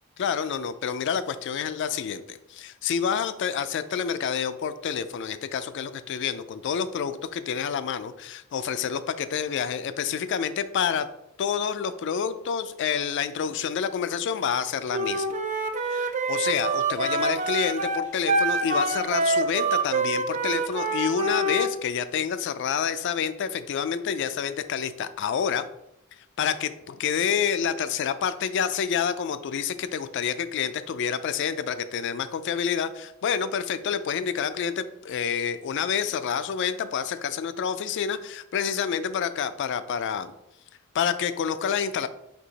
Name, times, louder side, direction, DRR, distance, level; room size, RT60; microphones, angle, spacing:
voice 1, 0.2-11.1 11.4-15.4 15.8-25.7 26.4-40.3 40.9-42.1, left 7 dB, 60° left, 13 dB, 0.3 m, -28 dB
Wind instrument woodwind instrument, 14.9-21.7, right 2 dB, 35° right, 0.4 m, -26 dB
4.5 x 2.8 x 3.9 m, 0.84 s
head